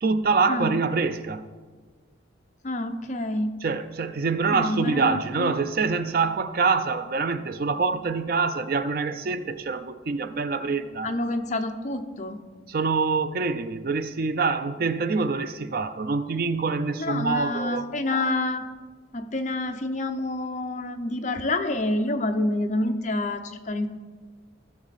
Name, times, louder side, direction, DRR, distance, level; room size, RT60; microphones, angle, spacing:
voice 1, 0.0-1.5 3.6-11.1 12.7-17.9, right 4 dB, 50° right, 0.4 m, -25 dB
voice 2, 2.6-3.5 4.4-5.5 11.0-12.4 17.0-18.6 19.1-23.9, left 2 dB, 40° left, 0.6 m, -28 dB
14.5 x 6.4 x 4.1 m
head